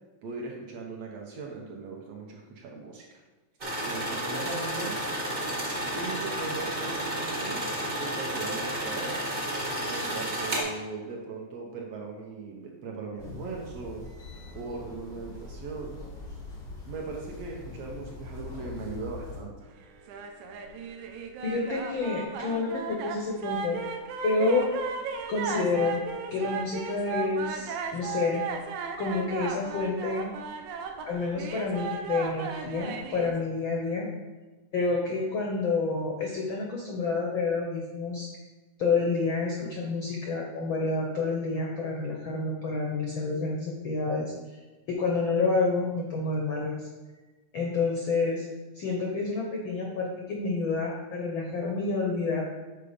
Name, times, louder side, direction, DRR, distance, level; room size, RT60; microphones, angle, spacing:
voice 1, 0.2-3.2 3.6-5.0 5.9-7.6 7.9-9.2 9.9-14.0 14.5-16.0 16.9-19.5, right 4 dB, 70° right, -1 dB, 1.7 m, -39 dB
sound 1, 3.6-10.6, right 1 dB, 30° right, 0.9 m, -31 dB
sound 2, 13.2-19.4, left 3 dB, 20° left, 0.6 m, -42 dB
sound 3, 20.0-33.4, right 5 dB, 85° right, 2.1 m, -36 dB
voice 2, 21.4-23.8 24.2-24.7 25.3-26.0 26.3-28.5 29.0-30.3 31.0-34.1 34.7-38.3 38.8-44.6 44.9-46.9 47.5-48.5 48.7-52.4, left 3 dB, 75° left, -1 dB, 1.1 m, -29 dB
6.9 x 5.0 x 5.0 m, 1.2 s
omnidirectional pair, 3.6 m